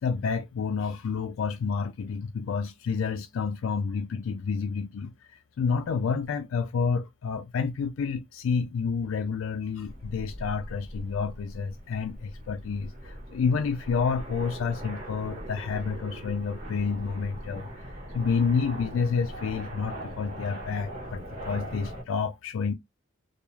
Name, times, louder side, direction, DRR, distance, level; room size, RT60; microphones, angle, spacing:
voice 1, 0.0-5.1 5.6-17.7 18.1-22.7, left 5 dB, 90° left, 0.3 m, -29 dB
sound 1, 9.8-22.0, right 1 dB, 45° right, 1.2 m, -40 dB
2.3 x 2.3 x 3.0 m
head